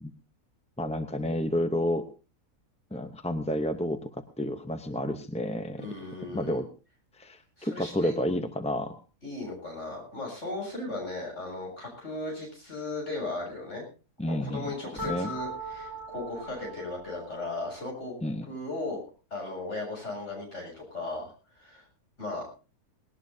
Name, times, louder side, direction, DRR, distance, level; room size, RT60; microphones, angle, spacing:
voice 1, 0.8-2.0 2.9-4.1 4.4-5.9 6.3-6.7 7.2-8.9 14.2-15.3 18.2-18.5, left 1 dB, 5° left, 7 dB, 0.5 m, -30 dB
voice 2, 5.8-6.6 7.6-8.1 9.2-13.8 14.3-18.1 18.5-19.0 19.3-21.8 22.2-22.5, left 2 dB, 50° left, -1 dB, 8.1 m, -36 dB
sound 1, 15.0-17.9, right 1 dB, 15° right, 4.0 m, -39 dB
20.0 x 18.5 x 2.8 m, 0.34 s
omnidirectional pair, 1.6 m